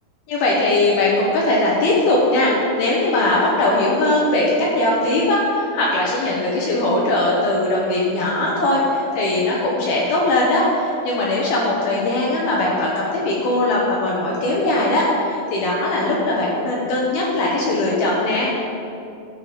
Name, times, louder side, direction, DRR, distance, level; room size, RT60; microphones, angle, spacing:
voice 1, 0.3-18.5, left 2 dB, 75° left, -4 dB, 2.2 m, -20 dB
13.5 x 5.8 x 5.0 m, 2.6 s
omnidirectional pair, 5.8 m